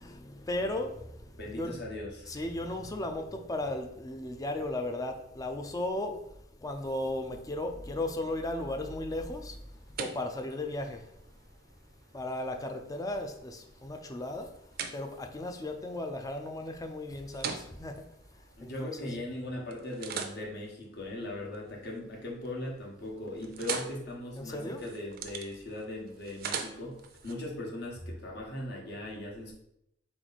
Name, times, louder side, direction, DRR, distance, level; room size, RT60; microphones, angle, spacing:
voice 1, 0.0-1.8 2.3-6.2 6.6-9.6 10.0-11.0 12.1-14.5 14.9-17.9 18.6-19.2 24.4-24.8, left 1 dB, 20° left, 0.4 m, -35 dB
voice 2, 1.4-2.3 18.6-29.5, left 1 dB, 60° left, 1.2 m, -39 dB
sound 1, 9.3-19.3 19.7-22.0 22.3-22.8 23.1-27.3, right 6 dB, 55° right, 0.5 m, -43 dB
4.1 x 3.1 x 4.0 m
head